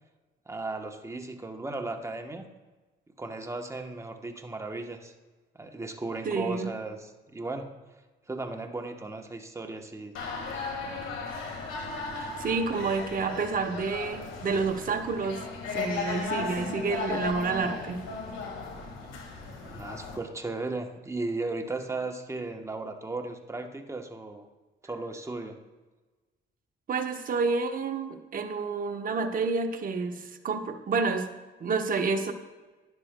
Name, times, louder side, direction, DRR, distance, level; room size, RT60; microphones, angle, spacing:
voice 1, 0.5-2.5 3.2-5.1 5.6-7.7 8.3-10.1 16.4-16.5 19.6-24.5 24.8-25.6, right 3 dB, 15° right, 4 dB, 0.9 m, -36 dB
voice 2, 6.2-6.7 12.1-15.5 15.7-18.0 26.9-31.3 31.6-32.3, right 4 dB, 45° right, 5 dB, 0.9 m, -29 dB
sound 1, 10.2-20.2, left 4 dB, 85° left, 1.7 m, -36 dB
12.5 x 9.9 x 2.2 m, 1.2 s
cardioid pair, 90°, 20 cm